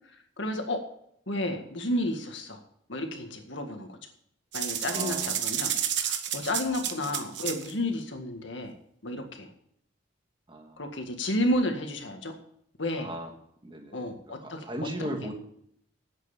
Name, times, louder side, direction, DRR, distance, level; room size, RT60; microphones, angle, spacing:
voice 1, 0.4-0.8 1.3-2.6 2.9-4.0 4.5-8.7 9.0-9.5 10.8-12.3 12.8-13.1 13.9-14.6 15.0-15.1, left 1 dB, 70° left, 4 dB, 1.9 m, -31 dB
sound 1, 4.5-7.7, right 9 dB, 60° right, 1.2 m, -30 dB
voice 2, 4.8-5.5 6.8-7.4 10.5-10.8 12.9-13.3 13.6-14.0 14.4-15.3, right 1 dB, 25° right, 3 dB, 1.8 m, -37 dB
10.0 x 8.2 x 7.3 m, 0.70 s
head